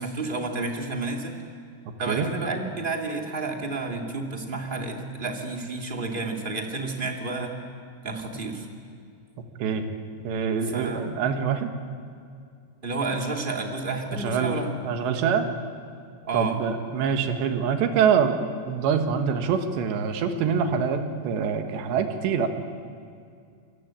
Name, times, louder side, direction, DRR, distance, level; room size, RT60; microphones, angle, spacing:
voice 1, 0.0-1.3 2.0-7.5 8.0-8.7 10.6-11.0 12.8-14.7 16.2-16.6, right 3 dB, 20° right, 1 dB, 1.7 m, -30 dB
voice 2, 10.3-11.7 14.2-14.6 14.8-15.5 16.3-18.4 18.7-22.5, right 7 dB, 85° right, 6 dB, 3.8 m, -25 dB
28.0 x 23.0 x 8.9 m, 2.3 s
omnidirectional pair, 4.9 m